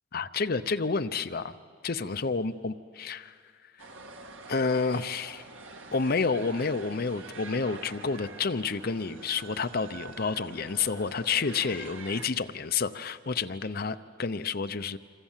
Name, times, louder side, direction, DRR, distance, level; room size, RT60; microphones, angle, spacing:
voice 1, 0.1-1.5 1.8-3.3 4.5-5.4 5.9-15.0, left 4 dB, 50° left, 11 dB, 0.7 m, -29 dB
sound 1, 3.8-12.3, right 3 dB, 85° right, 1.8 m, -46 dB
27.0 x 26.5 x 7.4 m, 2.2 s
head